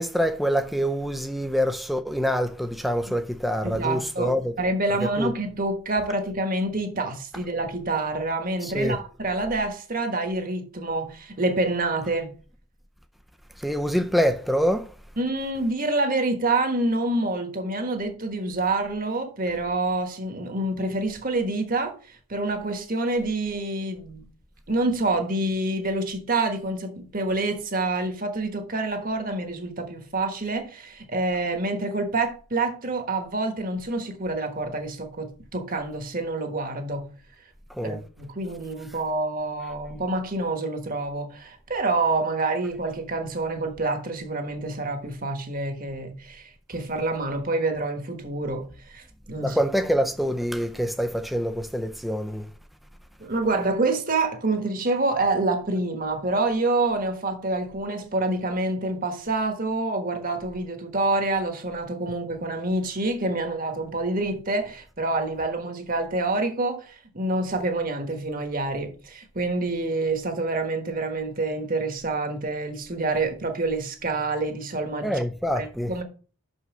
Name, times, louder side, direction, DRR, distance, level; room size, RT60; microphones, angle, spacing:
voice 1, 0.0-4.5 5.2-5.3 8.6-9.0 13.6-14.9 37.7-38.0 49.4-52.5 75.0-75.9, equal, ahead, 0.5 m, -25 dB
voice 2, 3.6-12.3 15.2-24.3 24.7-37.1 37.8-49.6 53.2-75.2 75.5-76.0, right 2 dB, 40° right, 1.4 m, -27 dB
6.3 x 5.6 x 6.0 m
head